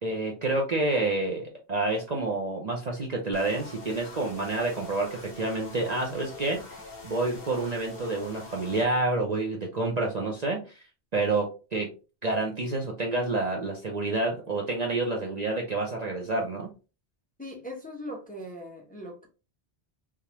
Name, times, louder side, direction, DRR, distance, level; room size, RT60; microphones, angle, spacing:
voice 1, 0.0-10.6 11.1-11.9 12.2-16.7, right 2 dB, 45° right, 0 dB, 0.7 m, -28 dB
sound 1, 3.3-8.8, left 3 dB, 55° left, 1.3 m, -44 dB
voice 2, 17.4-19.3, equal, 10° left, -1 dB, 0.8 m, -40 dB
3.5 x 3.4 x 2.9 m, 0.33 s
omnidirectional pair, 1.1 m